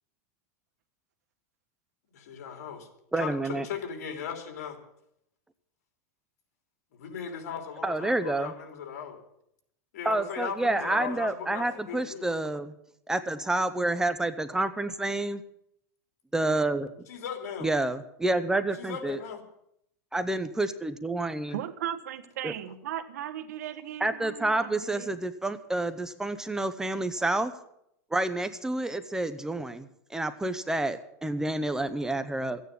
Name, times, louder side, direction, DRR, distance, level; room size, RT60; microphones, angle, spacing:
voice 1, 2.1-2.9 3.2-4.8 7.0-9.2 9.9-12.3 17.1-17.7 18.8-19.4, left 7 dB, 75° left, 5 dB, 3.2 m, -37 dB
voice 2, 3.1-3.7 7.8-8.5 10.0-12.7 13.1-15.4 16.3-16.9 17.6-19.2 20.1-21.6 22.4-22.5 24.0-27.5 28.1-32.6, right 2 dB, 5° right, 11 dB, 0.8 m, -29 dB
voice 3, 21.5-25.1, right 11 dB, 85° right, 11 dB, 1.4 m, -37 dB
14.0 x 9.4 x 8.5 m, 0.76 s
supercardioid pair, 140°, 9 cm